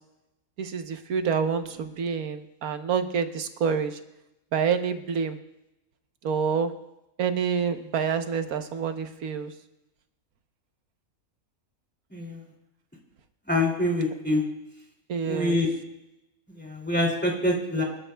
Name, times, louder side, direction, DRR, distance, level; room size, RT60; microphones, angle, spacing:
voice 1, 0.6-4.0 4.5-5.4 6.2-6.7 7.2-9.5 15.1-15.6, right 6 dB, 85° right, 8 dB, 1.4 m, -27 dB
voice 2, 13.5-14.4 15.3-15.7 16.6-17.8, left 1 dB, 5° left, -1 dB, 2.6 m, -25 dB
27.0 x 12.5 x 2.3 m, 0.91 s
omnidirectional pair, 1.5 m